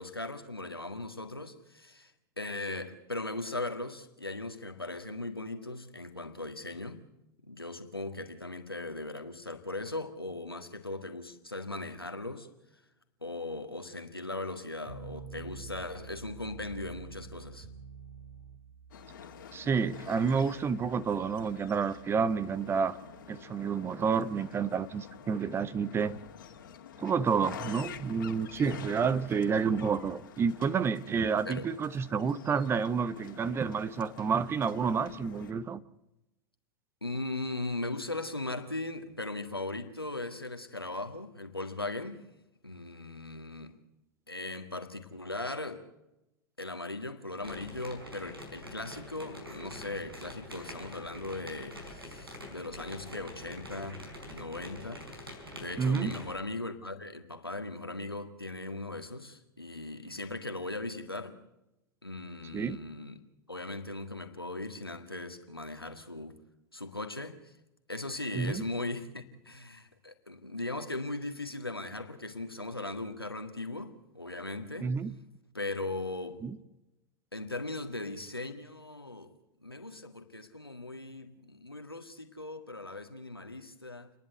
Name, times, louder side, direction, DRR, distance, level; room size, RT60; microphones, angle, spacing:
voice 1, 0.0-2.1 2.4-7.0 7.4-12.5 13.2-17.7 31.5-31.7 37.0-42.3 42.6-43.8 44.3-45.8 46.6-55.1 55.5-61.4 62.0-63.2 63.5-66.4 66.7-67.5 67.9-74.9 75.5-76.4 77.3-79.3 79.6-84.1, left 2 dB, 90° left, 1.8 m, -38 dB
sound 1, 14.9-26.0, right 6 dB, 45° right, 2.2 m, -50 dB
sound 2, 18.9-35.5, left 8 dB, 60° left, 2.2 m, -48 dB
voice 2, 19.5-23.0 23.3-26.2 27.0-35.8 55.8-56.1 62.5-62.8 68.3-68.6 74.8-75.1 76.4-76.6, right 6 dB, 20° right, 0.8 m, -29 dB
sound 3, 47.4-56.3, left 1 dB, 80° right, 5.1 m, -45 dB
30.0 x 11.0 x 8.1 m
figure-of-eight pair, 90°, 12 cm